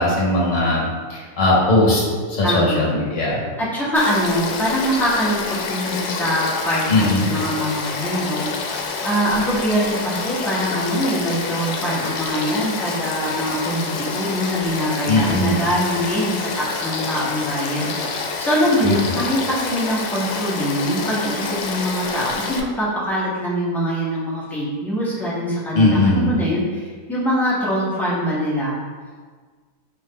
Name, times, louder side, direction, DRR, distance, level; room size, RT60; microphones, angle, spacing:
voice 1, 0.0-2.0 2.3-3.4 6.9-7.3 15.1-15.5 18.8-19.0 25.7-26.4, left 2 dB, 50° left, -5 dB, 1.4 m, -19 dB
voice 2, 2.4-2.9 3.6-28.8, equal, ahead, -9 dB, 0.7 m, -23 dB
Frog / Stream, 4.0-22.6, left 4 dB, 85° left, 1.2 m, -28 dB
4.7 x 2.7 x 3.7 m, 1.5 s
omnidirectional pair, 1.9 m